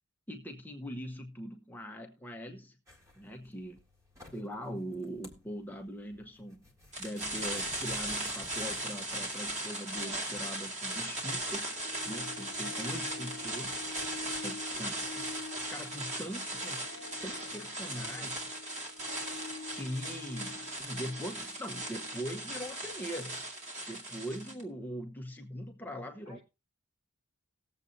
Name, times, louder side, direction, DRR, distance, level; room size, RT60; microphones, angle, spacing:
voice 1, 0.3-2.8 3.1-3.8 4.3-6.6 7.0-11.7 12.0-13.8 14.4-15.2 15.7-16.8 17.2-18.5 19.7-23.4 23.9-26.4, equal, 10° left, 0.9 m, -41 dB
sound 1, 2.9-9.3, left 1 dB, 15° right, 1.8 m, -56 dB
sound 2, 6.9-24.6, right 1 dB, 30° right, 2.3 m, -38 dB
voice 2, 9.9-10.3 15.2-16.4 16.7-18.0 26.2-26.4, left 1 dB, 60° right, 5.4 m, -57 dB
Harp, 11.3-22.4 22.6-22.7, left 4 dB, 60° left, 0.7 m, -47 dB
19.0 x 7.6 x 2.6 m
head